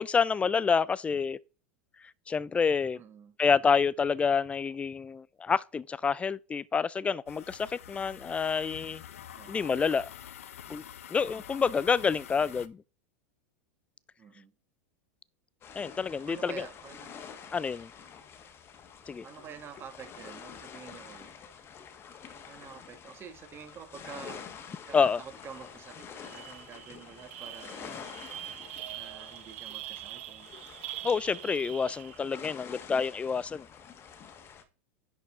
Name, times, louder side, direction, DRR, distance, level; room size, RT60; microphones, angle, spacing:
voice 1, 0.0-1.4 2.3-3.0 3.4-9.0 9.5-10.1 10.7-10.8 11.1-12.8 15.8-16.6 17.5-17.9 19.1-19.3 24.9-25.2 31.0-33.7, left 5 dB, 15° left, 0.3 m, -28 dB
voice 2, 2.9-3.4 9.3-9.6 14.2-14.5 16.1-17.1 19.2-21.3 22.3-24.4 24.9-28.1 28.9-30.5, right 7 dB, 30° right, 1.4 m, -48 dB
sound 1, 7.3-12.7, left 10 dB, 90° left, 0.6 m, -47 dB
sound 2, 15.6-34.6, left 7 dB, 35° left, 1.3 m, -48 dB
sound 3, 25.5-25.7 26.0-32.4, right 15 dB, 70° right, 0.6 m, -44 dB
10.5 x 4.5 x 3.6 m
hypercardioid pair, 110°, 7 cm